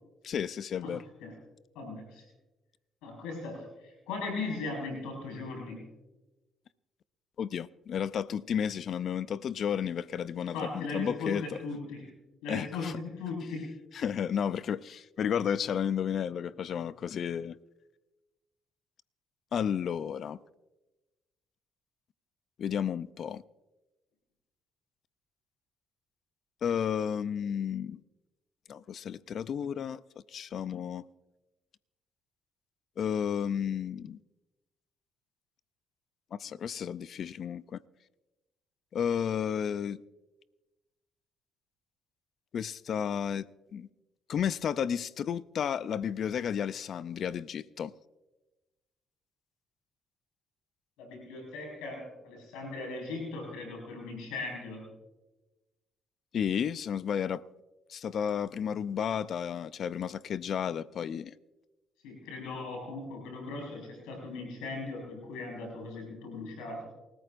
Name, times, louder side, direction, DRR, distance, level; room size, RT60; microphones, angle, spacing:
voice 1, 0.2-1.0 7.4-11.4 12.5-12.9 13.9-17.6 19.5-20.4 22.6-23.4 26.6-28.0 28.7-30.0 30.3-31.0 33.0-34.2 36.3-37.8 38.9-40.0 42.5-43.9 44.3-47.9 56.3-57.4 57.9-61.3, left 8 dB, 60° left, 0.5 m, -32 dB
voice 2, 0.8-1.3 1.8-2.2 3.0-5.9 10.4-12.1 12.4-13.7 51.0-54.9 62.0-66.9, left 3 dB, 85° left, 5.1 m, -38 dB
28.5 x 14.0 x 2.6 m
supercardioid pair, 55°, 0 cm